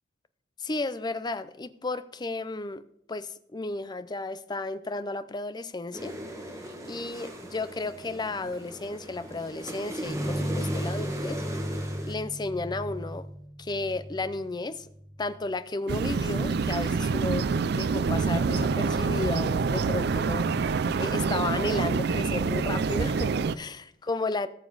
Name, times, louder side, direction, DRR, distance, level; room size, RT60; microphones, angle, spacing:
voice 1, 0.6-2.8 3.1-6.1 6.9-11.4 12.0-13.3 13.6-14.9 15.2-24.5, left 2 dB, 25° left, 14 dB, 0.5 m, -33 dB
sound 1, 5.9-12.1, equal, 15° right, 1.6 m, -38 dB
sound 2, 10.0-15.6, equal, 5° left, 3.8 m, -35 dB
sound 3, 15.9-23.5, right 4 dB, 60° right, 0.4 m, -26 dB
18.0 x 7.1 x 4.0 m, 0.74 s
head